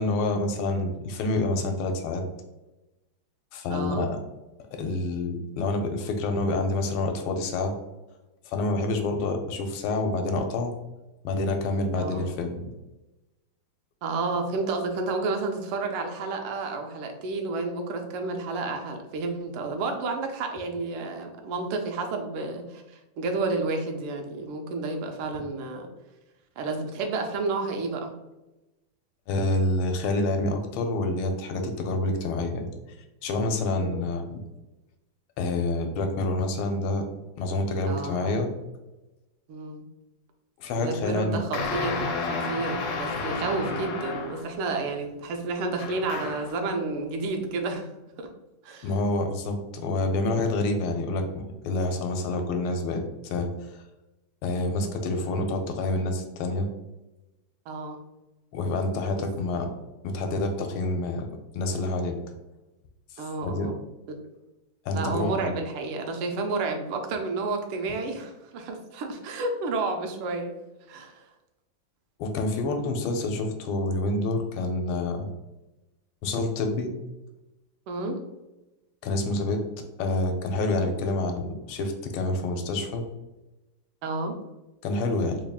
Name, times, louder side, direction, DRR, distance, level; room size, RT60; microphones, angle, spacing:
voice 1, 0.0-2.2 3.5-4.2 4.7-7.7 8.5-10.7 11.2-12.6 29.3-32.7 33.2-34.4 35.4-37.1 37.4-38.5 40.6-41.4 48.8-53.8 54.4-56.7 58.5-59.7 60.0-61.3 61.5-62.2 63.1-63.7 64.9-65.6 72.2-75.3 76.2-76.9 79.0-79.6 80.0-83.0 84.8-85.4, left 2 dB, 85° left, 5 dB, 1.4 m, -27 dB
voice 2, 3.7-4.1 11.9-12.3 14.0-25.9 26.6-28.1 33.8-34.0 37.9-38.4 39.5-39.8 40.8-47.9 48.2-48.3 48.6-48.9 57.7-58.0 59.1-59.3 63.2-63.7 64.9-70.5 70.9-71.3 77.9-78.2 84.0-84.4, right 3 dB, 85° right, 4 dB, 1.5 m, -31 dB
sound 1, 41.5-44.6 45.8-46.6, left 3 dB, 65° left, 1.0 m, -31 dB
3.9 x 2.3 x 3.4 m, 1.0 s
omnidirectional pair, 2.3 m